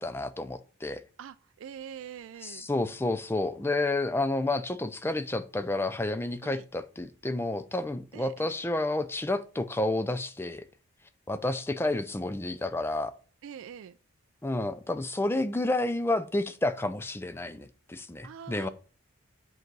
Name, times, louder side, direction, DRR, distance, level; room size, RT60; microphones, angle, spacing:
voice 1, 0.0-1.0 2.4-10.6 11.3-13.1 14.4-18.7, left 2 dB, 10° left, 0.4 m, -30 dB
voice 2, 1.2-2.7 6.4-6.7 8.1-8.5 13.4-14.0 18.2-18.7, right 8 dB, 65° right, 0.3 m, -44 dB
7.6 x 4.0 x 4.6 m
head